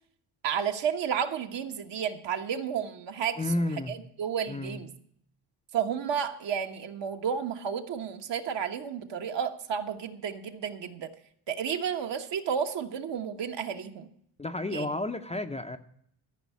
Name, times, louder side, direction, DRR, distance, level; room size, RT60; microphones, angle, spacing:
voice 1, 0.4-3.4 3.9-4.9 5.7-11.1 11.5-14.1 14.7-14.9, right 7 dB, 60° right, 5 dB, 1.3 m, -32 dB
voice 2, 3.4-4.0 4.5-4.8 14.4-15.8, left 2 dB, 15° left, 6 dB, 0.6 m, -31 dB
13.5 x 5.6 x 8.2 m, 0.68 s
cardioid pair, 90°, 48 cm